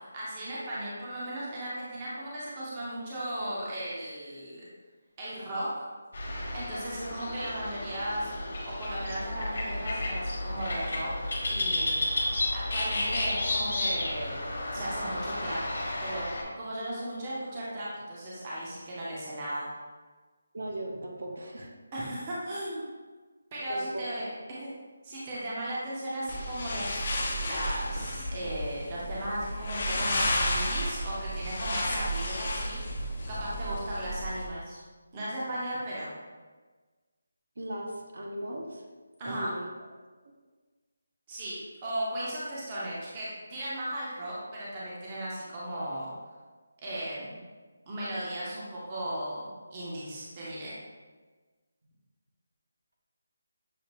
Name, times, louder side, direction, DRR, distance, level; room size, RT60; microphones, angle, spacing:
voice 1, 0.1-4.7 5.2-5.9 6.5-8.3 8.7-11.1 11.5-12.0 12.5-14.4 14.7-15.6 16.0-19.7 21.9-22.9 23.5-24.7 25.0-27.1 27.4-34.8 35.1-36.1 39.2-39.6 41.3-46.1 46.8-47.4 47.9-50.8, right 1 dB, 15° right, -7 dB, 0.6 m, -36 dB
sound 1, 6.1-16.4, left 1 dB, 45° left, 1.1 m, -32 dB
voice 2, 20.5-21.7 23.7-24.1 37.6-38.8 39.2-39.7, right 1 dB, 55° right, 1 dB, 0.7 m, -37 dB
sound 2, 26.3-34.5, equal, 30° left, 0.5 m, -32 dB
6.5 x 2.4 x 3.0 m, 1.4 s
figure-of-eight pair, 180°, 0 cm